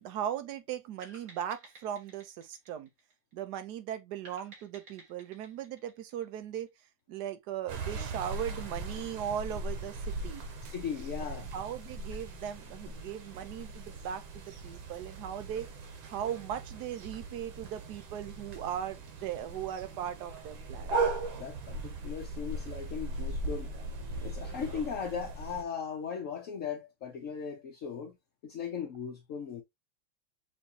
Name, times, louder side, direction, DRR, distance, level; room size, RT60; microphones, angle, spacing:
voice 1, 0.0-2.9 3.3-6.7 7.1-10.4 11.2-15.7 16.1-20.9, right 10 dB, 65° right, 1.1 m, -38 dB
sound 1, 1.0-3.6 4.2-6.8, right 2 dB, 50° right, 2.0 m, -55 dB
sound 2, 7.7-25.6, right 3 dB, 90° right, 1.9 m, -39 dB
voice 2, 10.7-11.5 12.9-13.0 21.3-23.7 24.2-28.2 28.4-29.6, left 7 dB, 55° left, 0.9 m, -38 dB
6.1 x 2.7 x 2.8 m
omnidirectional pair, 2.1 m